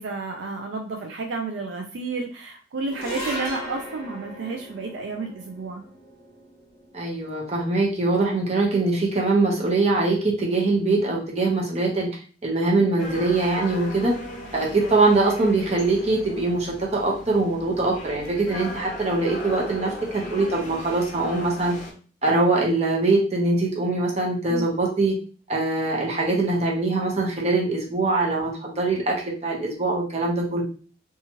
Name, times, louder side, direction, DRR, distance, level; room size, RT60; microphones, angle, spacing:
voice 1, 0.0-5.8 24.5-24.7, right 3 dB, 70° right, 3 dB, 0.4 m, -31 dB
sound 1, 2.9-9.3, equal, 20° left, 1.2 m, -39 dB
voice 2, 6.9-12.1 12.4-14.1 14.5-21.8 22.2-25.2 25.5-29.2 29.4-30.6, right 2 dB, 35° right, -3 dB, 0.8 m, -23 dB
sound 2, 13.0-21.9, left 1 dB, 40° left, 0.6 m, -37 dB
2.8 x 2.3 x 2.9 m, 0.40 s
head